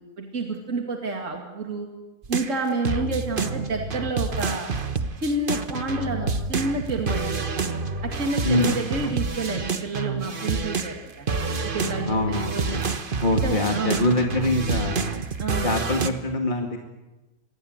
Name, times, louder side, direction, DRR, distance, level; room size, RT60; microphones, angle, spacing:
voice 1, 0.0-1.9 2.3-4.7 5.2-7.6 8.0-11.3 11.6-12.9 13.3-14.1 15.4-15.8, right 2 dB, 55° right, 2 dB, 2.8 m, -29 dB
sound 1, 2.2-11.0 11.3-16.1, right 4 dB, 35° right, 1.3 m, -28 dB
voice 2, 8.4-9.1 12.1-12.8 13.2-15.1 15.6-16.8, left 1 dB, 30° left, 2 dB, 2.4 m, -24 dB
27.5 x 22.0 x 8.1 m, 1.1 s
omnidirectional pair, 1.6 m